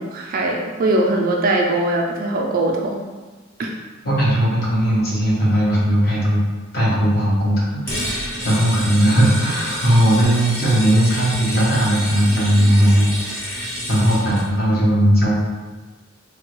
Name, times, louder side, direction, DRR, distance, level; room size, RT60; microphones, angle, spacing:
voice 1, 0.0-3.1 3.6-3.7, right 2 dB, 45° right, 0 dB, 0.3 m, -21 dB
voice 2, 4.0-6.4 6.7-15.3, equal, 50° left, -6 dB, 0.9 m, -18 dB
sound 1, 7.9-14.5, equal, 10° left, 0.8 m, -29 dB
3.4 x 2.2 x 3.0 m, 1.3 s
head